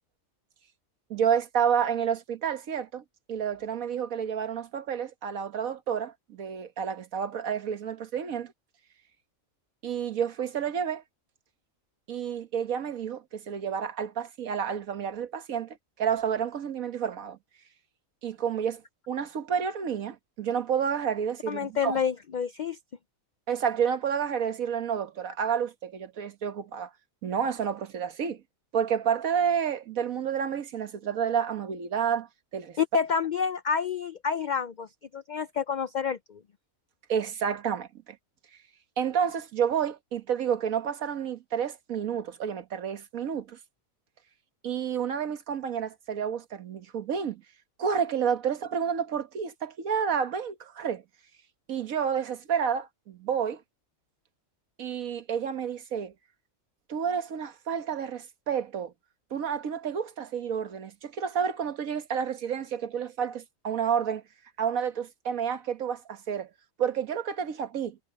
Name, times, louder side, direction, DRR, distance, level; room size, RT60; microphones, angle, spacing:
voice 1, 1.1-8.5 9.8-11.0 12.1-17.4 18.2-18.8 19.1-22.0 23.5-26.9 27.2-28.4 28.7-32.3 32.5-32.8 37.1-38.2 39.0-43.6 44.6-47.4 47.8-51.0 51.7-53.6 54.8-56.1 56.9-58.9 59.3-64.2 64.6-66.5 66.8-68.0, right 7 dB, 80° right, 1.6 m, -30 dB
voice 2, 21.5-22.8 32.8-34.9 35.1-36.4, left 7 dB, 85° left, 0.4 m, -28 dB
omnidirectional pair, 1.4 m